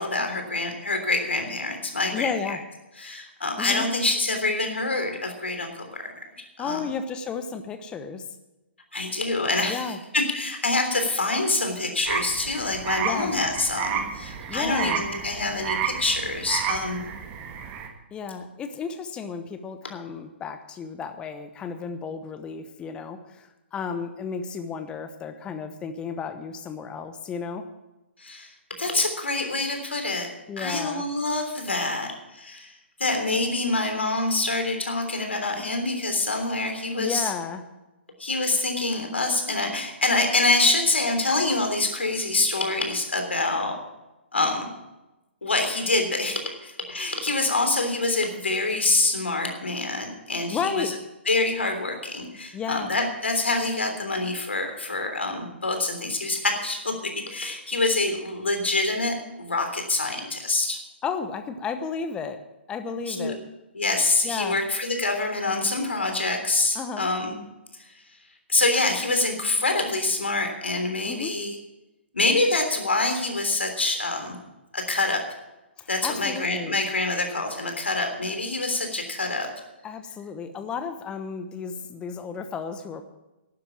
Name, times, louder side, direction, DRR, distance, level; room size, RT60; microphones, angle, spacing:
voice 1, 0.0-2.6 3.0-5.9 6.6-6.9 8.9-17.1 28.2-28.5 28.8-30.3 30.6-32.7 33.0-37.3 38.2-43.7 44.3-44.7 45.4-50.9 51.2-60.8 63.1-63.3 63.7-67.4 67.8-67.9 68.5-71.6 72.1-74.4 74.7-75.3 75.9-79.5, left 2 dB, 75° left, 5 dB, 3.3 m, -26 dB
voice 2, 2.1-2.6 3.6-3.9 6.6-8.3 9.7-10.0 13.0-13.4 14.5-15.0 18.1-27.7 30.5-31.0 37.0-37.6 50.5-50.9 52.5-52.9 61.0-62.4 62.7-63.4 64.2-64.6 66.7-67.1 71.1-71.3 75.8-76.8 79.8-83.0, left 6 dB, 15° left, 8 dB, 1.0 m, -33 dB
sound 1, 12.1-17.9, right 8 dB, 25° right, 1.6 m, -31 dB
12.0 x 9.8 x 7.2 m, 1.0 s
figure-of-eight pair, 125°, 6 cm